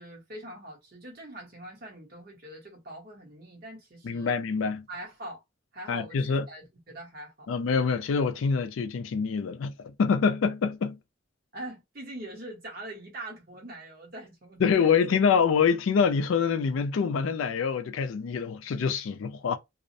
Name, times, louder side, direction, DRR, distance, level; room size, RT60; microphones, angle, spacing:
voice 1, 0.0-4.3 4.9-5.4 5.7-7.5 11.5-15.0, right 1 dB, 50° right, 1.1 m, -43 dB
voice 2, 4.0-4.8 5.9-6.4 7.5-9.7 10.0-11.0 14.6-19.6, left 6 dB, 80° left, 0.4 m, -25 dB
2.4 x 2.0 x 2.6 m
head